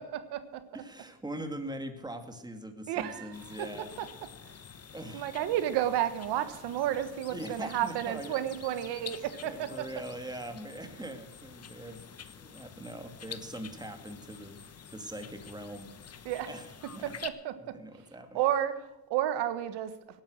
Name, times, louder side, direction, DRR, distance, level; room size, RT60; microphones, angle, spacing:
voice 1, 0.0-0.8 2.9-4.1 4.4-4.6 5.1-9.9 16.2-16.5 16.8-17.8 18.3-20.0, right 11 dB, 85° right, 12 dB, 1.4 m, -32 dB
voice 2, 0.7-3.9 4.9-5.3 7.3-8.4 8.7-8.8 9.5-12.0 12.3-14.6 14.9-17.0 17.7-18.4, right 1 dB, 10° right, 6 dB, 2.3 m, -42 dB
sound 1, 3.3-17.3, left 7 dB, 40° left, 1.2 m, -48 dB
18.0 x 10.5 x 6.3 m, 0.96 s
cardioid pair, 80°, 40 cm